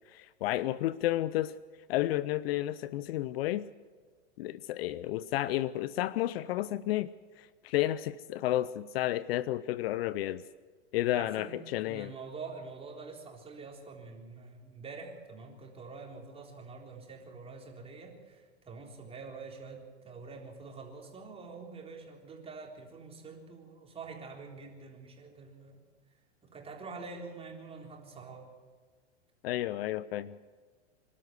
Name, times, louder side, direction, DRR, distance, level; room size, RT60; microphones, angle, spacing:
voice 1, 0.1-1.6 1.9-3.6 4.4-7.1 7.4-10.4 10.9-12.1 29.4-30.4, left 14 dB, 55° left, 18 dB, 0.6 m, -31 dB
voice 2, 11.1-25.8 26.4-28.5, right 4 dB, 15° right, 0 dB, 3.8 m, -46 dB
25.0 x 12.5 x 8.2 m, 1.5 s
hypercardioid pair, 125°, 35 cm